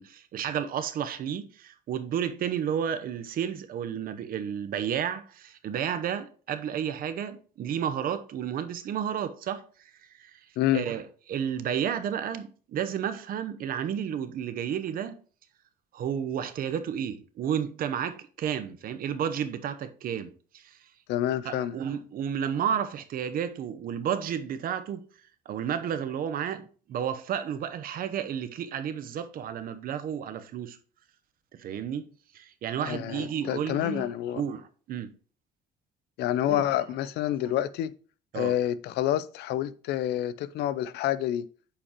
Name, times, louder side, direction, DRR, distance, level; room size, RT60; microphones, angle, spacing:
voice 1, 0.0-10.5 10.7-11.0 11.3-15.2 15.9-20.8 21.4-25.0 25.5-30.8 31.5-34.1 34.3-35.1 36.5-36.7 38.3-38.5, right 8 dB, 60° right, 0.8 m, -32 dB
voice 2, 21.1-21.8 32.8-34.4 36.2-37.9 38.3-41.5, left 12 dB, 75° left, 0.5 m, -28 dB
8.5 x 5.2 x 2.9 m
cardioid pair, 110°, 17 cm